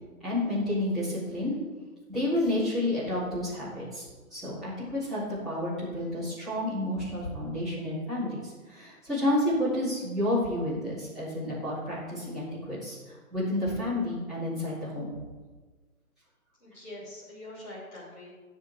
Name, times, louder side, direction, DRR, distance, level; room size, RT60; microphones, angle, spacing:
voice 1, 0.2-1.5 2.1-4.0 4.3-15.1, left 1 dB, ahead, -15 dB, 3.6 m, -30 dB
voice 2, 16.6-18.3, left 1 dB, 15° left, -9 dB, 3.5 m, -44 dB
17.0 x 6.6 x 3.6 m, 1.3 s
figure-of-eight pair, 150°, 44 cm